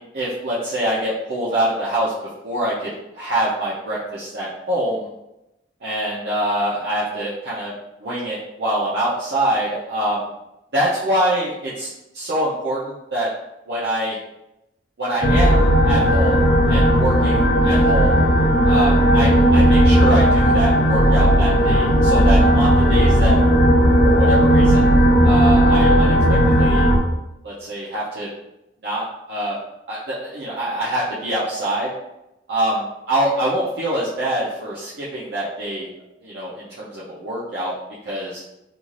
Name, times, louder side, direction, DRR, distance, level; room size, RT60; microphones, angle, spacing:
voice 1, 0.0-2.1 2.4-5.1 5.8-7.7 8.0-10.3 10.7-13.3 13.7-14.2 15.0-18.2 18.6-23.3 24.0-25.0 25.2-26.9 27.4-28.3 28.8-29.6 29.9-31.9 32.5-35.9 36.2-37.8 38.0-38.4, right 1 dB, 65° right, -8 dB, 0.6 m, -25 dB
sound 1, 15.2-27.0, equal, 60° left, 0.5 m, -15 dB
2.6 x 2.4 x 3.1 m, 0.90 s
head